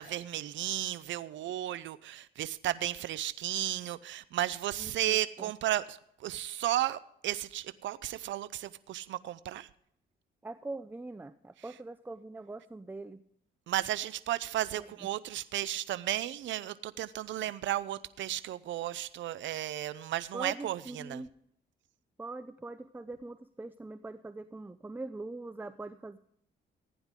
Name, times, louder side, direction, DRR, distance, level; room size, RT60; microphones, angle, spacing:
voice 1, 0.0-9.7 13.7-21.2, right 13 dB, 70° right, 15 dB, 0.6 m, -34 dB
voice 2, 4.8-5.5 10.4-13.2 14.8-14.9 20.3-21.3 22.2-26.2, right 2 dB, 10° right, 13 dB, 0.6 m, -42 dB
15.5 x 9.9 x 3.7 m, 0.69 s
cardioid pair, 90°, 20 cm